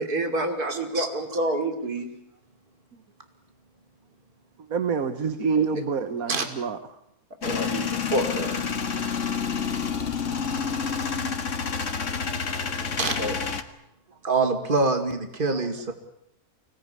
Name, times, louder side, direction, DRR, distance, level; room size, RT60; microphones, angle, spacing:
voice 1, 0.0-2.1 7.4-8.6 13.2-13.4, right 1 dB, 80° right, 5 dB, 3.6 m, -28 dB
voice 2, 0.7-1.1 6.3-6.5 13.0-13.1 14.2-15.9, right 3 dB, 35° right, 6 dB, 2.5 m, -25 dB
voice 3, 4.7-6.8 9.0-9.1, right 5 dB, 65° right, 10 dB, 1.7 m, -26 dB
Male speech man speaking / Vehicle / Engine starting, 7.4-13.6, left 6 dB, 55° left, 1.8 m, -28 dB
24.5 x 18.5 x 9.6 m, 0.77 s
omnidirectional pair, 1.6 m